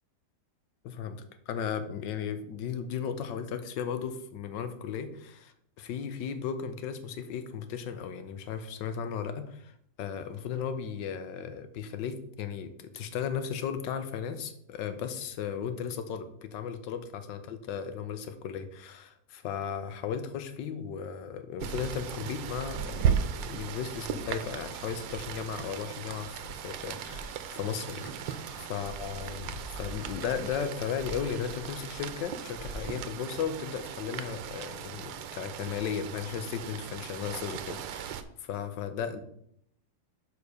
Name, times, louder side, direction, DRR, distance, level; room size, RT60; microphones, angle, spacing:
voice 1, 0.8-9.7 10.0-28.4 28.7-39.2, left 7 dB, 75° left, 10 dB, 1.4 m, -36 dB
Rain, 21.6-38.2, right 8 dB, 85° right, 1.3 m, -36 dB
sound 1, 26.6-32.9, right 1 dB, 15° left, 0.9 m, -45 dB
6.5 x 5.0 x 5.2 m, 0.71 s
omnidirectional pair, 2.0 m